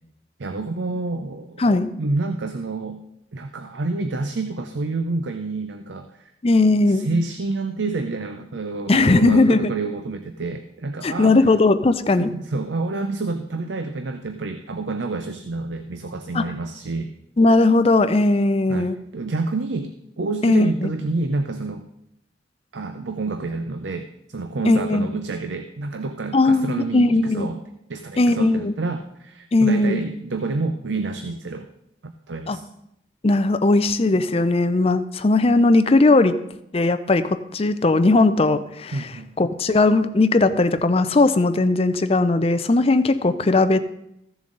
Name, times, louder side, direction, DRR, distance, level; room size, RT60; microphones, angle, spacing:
voice 1, 0.4-1.6 2.0-3.0 3.3-6.3 6.9-11.4 12.2-17.1 18.7-21.9 22.7-27.6 27.9-31.7 32.0-32.6 38.9-39.3, right 3 dB, 85° right, 7 dB, 0.6 m, -28 dB
voice 2, 6.4-7.1 8.9-9.7 11.0-12.3 16.3-16.5 17.4-18.9 20.4-20.9 24.6-25.1 26.3-27.5 28.2-28.7 29.5-30.0 32.5-32.6 33.2-36.4 36.7-39.1 39.4-43.8, left 2 dB, 35° left, 11 dB, 0.5 m, -18 dB
14.5 x 7.1 x 3.9 m, 0.79 s
head